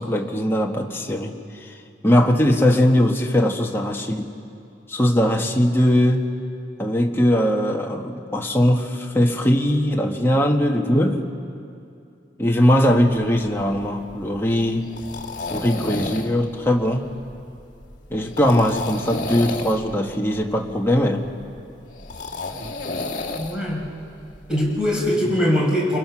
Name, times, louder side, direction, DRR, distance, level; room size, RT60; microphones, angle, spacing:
voice 1, 0.0-1.7 2.0-4.3 4.9-6.3 6.8-11.3 12.4-14.9 15.5-17.1 18.1-21.3, equal, 15° left, 1 dB, 1.4 m, -20 dB
sound 1, 12.9-25.1, left 2 dB, 40° left, 2.1 m, -33 dB
voice 2, 23.3-23.9 24.5-26.0, equal, 5° right, -4 dB, 5.0 m, -21 dB
28.0 x 22.0 x 6.0 m, 2.5 s
head